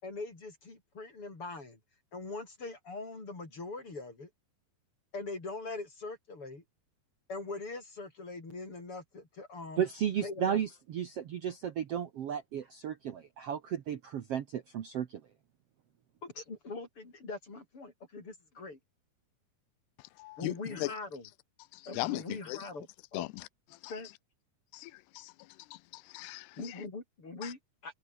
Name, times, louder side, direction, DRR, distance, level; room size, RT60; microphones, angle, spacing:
voice 1, 0.0-1.8 2.1-4.3 5.1-6.6 7.3-9.8 10.2-10.6 16.2-18.8 20.4-21.3 21.9-23.3 23.9-24.1 26.6-28.0, left 3 dB, 35° left, 6.7 m, -42 dB
voice 2, 9.8-15.2, right 9 dB, 75° right, 1.4 m, -34 dB
voice 3, 20.2-20.9 21.7-22.2 22.5-22.6 23.1-23.3 24.7-25.3 25.7-26.7 27.4-27.5, left 21 dB, 90° left, 2.8 m, -38 dB
omnidirectional pair, 4.6 m